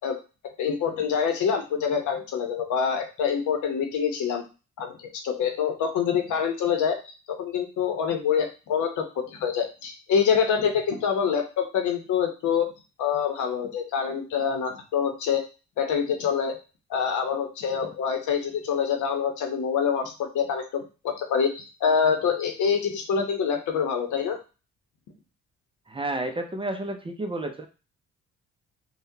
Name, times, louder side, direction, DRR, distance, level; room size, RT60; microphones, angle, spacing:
voice 1, 0.6-4.4 4.8-12.7 13.0-15.4 15.8-16.6 16.9-24.4, left 7 dB, 75° left, 5 dB, 0.8 m, -26 dB
voice 2, 25.9-27.7, right 2 dB, 20° right, 5 dB, 0.5 m, -31 dB
3.6 x 2.2 x 2.7 m, 0.32 s
cardioid pair, 90°, 30 cm